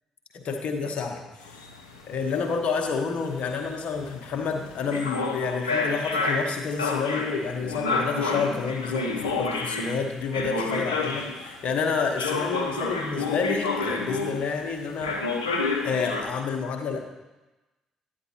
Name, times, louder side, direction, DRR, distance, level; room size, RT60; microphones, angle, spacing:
voice 1, 0.3-1.6 2.1-15.2 15.8-17.0, left 5 dB, 55° left, 3 dB, 1.1 m, -29 dB
sound 1, 1.4-11.6 12.2-14.7 15.0-16.2, left 3 dB, 90° left, 0.6 m, -29 dB
9.6 x 9.3 x 2.8 m, 1.1 s
hypercardioid pair, 45°, 2 cm